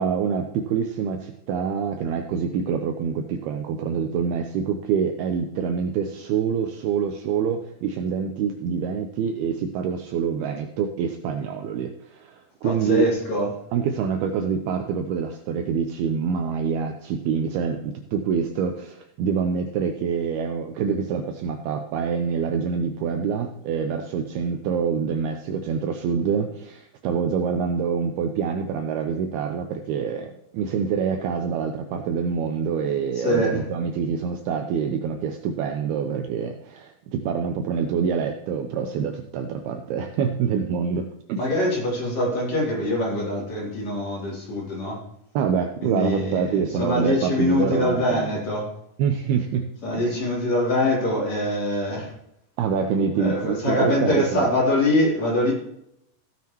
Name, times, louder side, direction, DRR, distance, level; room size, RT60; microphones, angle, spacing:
voice 1, 0.0-13.1 13.7-41.5 45.4-48.3 49.0-50.2 52.6-54.5, right 6 dB, 75° right, 5 dB, 2.4 m, -26 dB
voice 2, 12.6-13.5 33.2-33.6 41.3-45.0 45.8-48.8 49.8-52.1 53.2-55.5, left 1 dB, 40° left, -4 dB, 4.3 m, -24 dB
15.5 x 9.4 x 3.0 m, 0.77 s
omnidirectional pair, 5.1 m